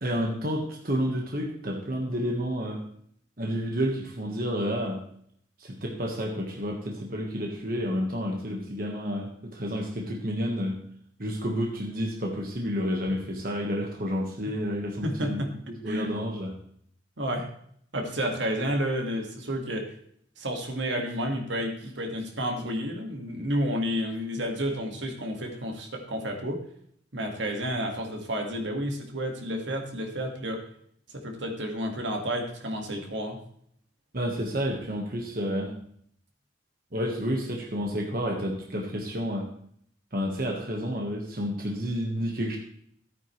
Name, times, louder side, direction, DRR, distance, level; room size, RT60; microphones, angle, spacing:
voice 1, 0.0-2.8 3.4-5.0 5.6-10.8 11.2-15.4 15.7-16.6 34.1-35.8 36.9-39.5 40.1-42.6, equal, 50° right, 0 dB, 1.5 m, -30 dB
voice 2, 15.0-15.5 15.9-16.1 17.2-17.5 17.9-19.9 20.4-26.6 27.1-30.6 31.1-33.4, equal, 75° right, 3 dB, 1.9 m, -30 dB
14.0 x 9.2 x 3.3 m, 0.65 s
head